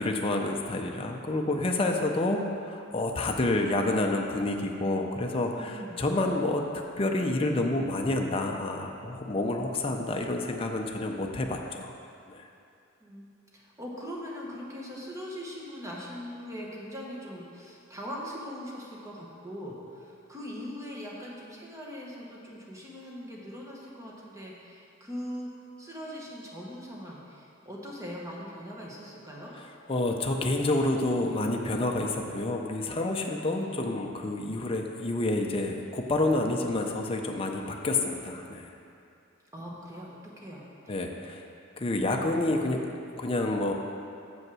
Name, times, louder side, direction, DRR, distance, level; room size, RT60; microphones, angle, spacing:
voice 1, 0.0-6.6 7.0-11.9 12.3-12.4 29.9-38.7 40.9-41.4 41.8-42.8 43.1-43.7, left 2 dB, 25° left, 2 dB, 0.5 m, -28 dB
voice 2, 5.5-6.0 13.0-25.5 25.8-29.5 33.5-33.8 39.5-41.0, equal, 15° right, -4 dB, 1.1 m, -41 dB
7.2 x 5.3 x 6.1 m, 2.5 s
head